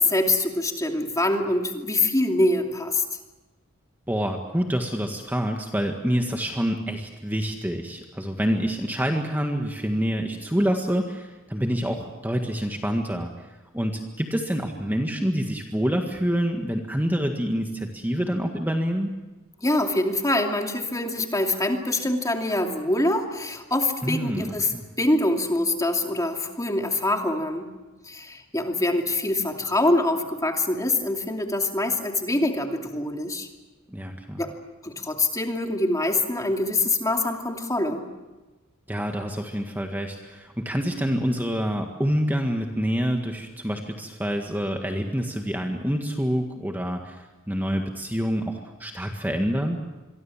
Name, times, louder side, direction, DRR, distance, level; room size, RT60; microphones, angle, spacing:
voice 1, 0.0-3.0 19.6-24.7 25.0-27.7 28.1-33.5 34.4-34.5 34.8-38.0, left 2 dB, 15° left, 3 dB, 2.6 m, -24 dB
voice 2, 4.1-13.3 13.7-19.1 24.0-24.8 33.9-34.4 38.9-49.8, equal, 10° right, 3 dB, 1.7 m, -27 dB
26.5 x 23.0 x 7.4 m, 1.1 s
head